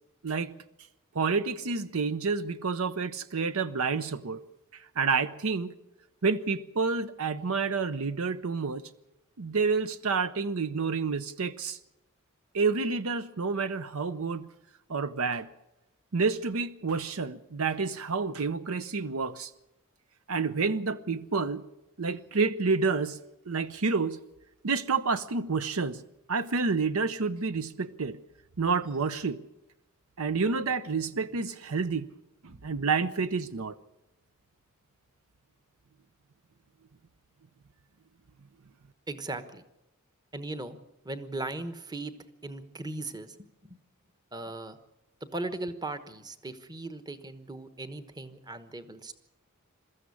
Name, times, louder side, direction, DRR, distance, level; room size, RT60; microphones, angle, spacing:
voice 1, 0.2-0.6 1.1-4.4 5.0-5.7 6.2-8.8 9.4-11.8 12.5-14.5 14.9-15.5 16.1-19.5 20.3-21.6 22.0-23.2 23.5-24.2 24.6-26.0 26.3-28.2 28.6-29.4 30.2-32.1 32.4-33.7, right 4 dB, 65° right, 13 dB, 0.7 m, -29 dB
voice 2, 39.1-39.6 40.3-40.8 41.0-42.1 42.4-43.8 44.3-44.8 45.2-49.1, right 2 dB, 20° right, 11 dB, 1.1 m, -38 dB
22.5 x 14.0 x 8.4 m, 0.92 s
head